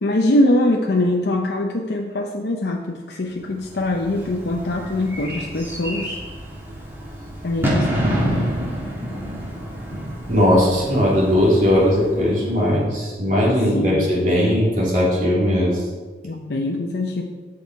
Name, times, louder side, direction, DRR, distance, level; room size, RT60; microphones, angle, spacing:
voice 1, 0.0-6.2 7.4-8.5 13.6-14.1 16.2-17.2, left 1 dB, 70° left, 1 dB, 0.6 m, -23 dB
Bird / Fireworks, 3.6-12.8, equal, 15° right, 1.7 m, -28 dB
voice 2, 10.3-15.8, equal, 45° right, -5 dB, 2.7 m, -18 dB
8.3 x 6.3 x 4.6 m, 1.4 s
head